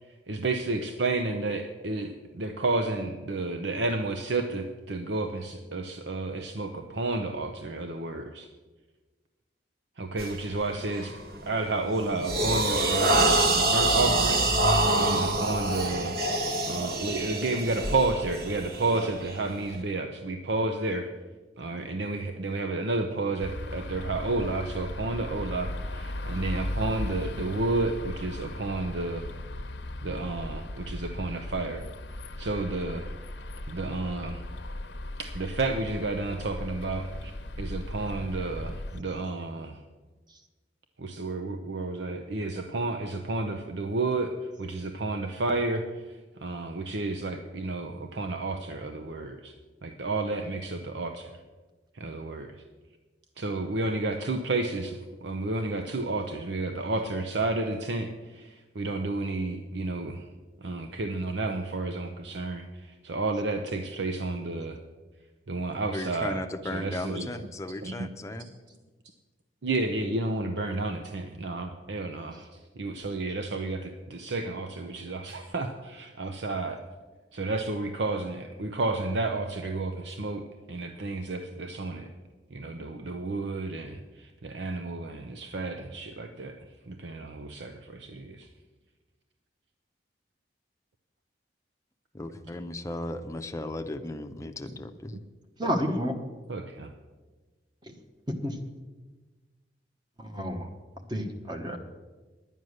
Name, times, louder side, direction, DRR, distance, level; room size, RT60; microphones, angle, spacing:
voice 1, 0.0-8.5 10.0-16.2 16.7-21.1 21.6-29.4 30.0-31.9 32.2-33.1 33.7-34.5 35.2-37.3 37.6-39.8 41.0-49.5 49.8-51.3 51.9-52.6 53.4-60.3 60.6-64.8 65.5-67.5 67.8-68.1 69.6-76.8 77.3-82.1 82.5-88.5 96.5-96.9, right 2 dB, 80° right, 5 dB, 0.7 m, -31 dB
sound 1, 10.2-10.4 10.9-11.2 11.7-19.8, right 2 dB, 55° right, 1.3 m, -26 dB
sound 2, 23.4-39.0, left 1 dB, 85° left, 0.9 m, -37 dB
voice 2, 65.9-68.5 92.1-95.2, left 1 dB, 15° left, 6 dB, 0.6 m, -36 dB
voice 3, 95.6-96.1 97.9-98.0 98.3-98.6 100.2-100.7 101.1-101.8, equal, 25° right, 5 dB, 1.1 m, -30 dB
11.0 x 9.2 x 6.5 m, 1.3 s
head